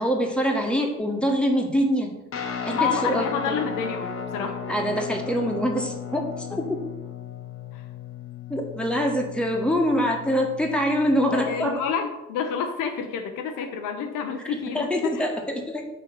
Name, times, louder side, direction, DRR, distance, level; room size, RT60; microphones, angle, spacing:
voice 1, 0.0-2.1 2.6-3.6 4.7-6.8 8.5-11.8 14.4-15.9, equal, 5° left, 1 dB, 1.4 m, -25 dB
Guitar, 2.3-11.7, left 6 dB, 40° left, 1.0 m, -35 dB
voice 2, 2.8-4.6 7.7-7.9 11.3-15.2, left 6 dB, 60° left, 5 dB, 0.7 m, -29 dB
5.5 x 3.4 x 5.5 m, 1.0 s
figure-of-eight pair, 40°, 36 cm